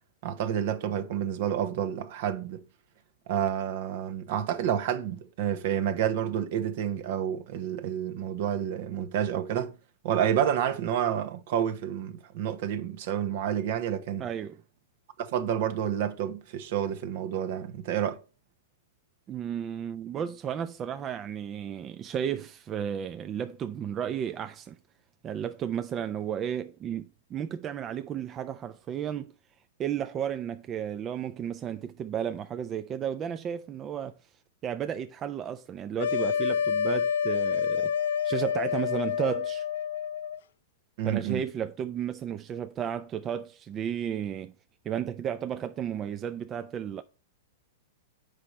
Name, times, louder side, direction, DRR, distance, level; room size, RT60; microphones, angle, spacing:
voice 1, 0.2-2.6 3.3-9.8 10.0-14.3 15.2-18.2 41.0-41.4, right 9 dB, 60° right, 1.0 m, -29 dB
voice 2, 14.2-14.6 19.3-24.8 25.2-29.3 29.8-34.1 34.6-37.9 38.2-39.7 41.0-44.5 44.8-47.0, right 9 dB, 25° right, 0.5 m, -33 dB
sound 1, 36.0-40.4, left 8 dB, 75° left, 0.4 m, -28 dB
7.7 x 5.2 x 4.1 m
hypercardioid pair, 125°, 0 cm